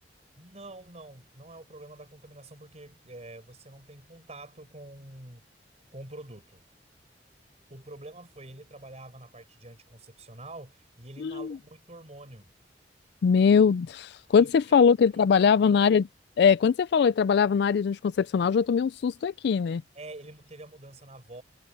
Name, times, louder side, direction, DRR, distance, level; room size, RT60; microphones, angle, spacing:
voice 1, 0.4-5.4 5.9-6.6 7.7-12.5 14.4-14.5 15.1-15.7 19.9-21.4, right 2 dB, 40° right, 5.0 m, -46 dB
voice 2, 11.2-11.6 13.2-16.1 16.4-19.8, left 6 dB, 65° left, 0.3 m, -22 dB
head